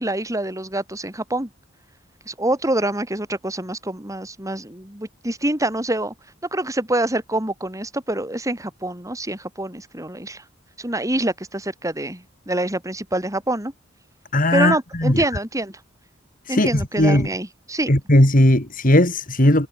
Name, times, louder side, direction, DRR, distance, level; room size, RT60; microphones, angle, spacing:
voice 1, 0.0-1.5 2.3-6.1 6.5-10.4 10.8-13.7 14.5-15.8 16.5-17.9, right 1 dB, 15° right, 4.1 m, -26 dB
voice 2, 14.3-15.2 16.5-17.3 17.9-19.7, left 1 dB, 45° left, 3.7 m, -17 dB
head